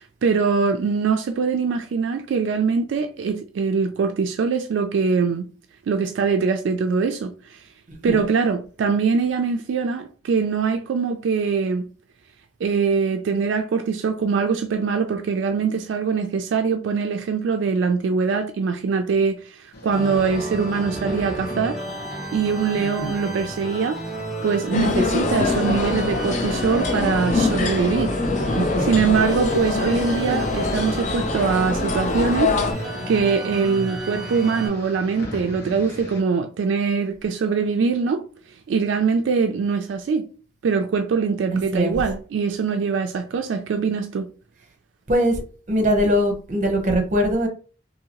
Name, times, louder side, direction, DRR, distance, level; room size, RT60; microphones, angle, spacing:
voice 1, 0.0-5.5 5.9-7.6 8.0-11.9 12.6-21.8 22.3-24.0 24.4-28.2 28.5-38.2 38.7-40.3 40.6-44.3, right 5 dB, 75° right, 0.3 m, -23 dB
sound 1, 19.7-36.2, left 1 dB, 55° left, 0.9 m, -41 dB
sound 2, 19.9-34.7, right 1 dB, 5° right, 0.8 m, -32 dB
sound 3, 24.7-32.7, left 3 dB, 40° left, 0.4 m, -24 dB
voice 2, 28.5-29.3 41.5-42.0 45.1-45.4 45.7-47.5, equal, 40° right, 0.7 m, -22 dB
2.8 x 2.7 x 2.9 m
head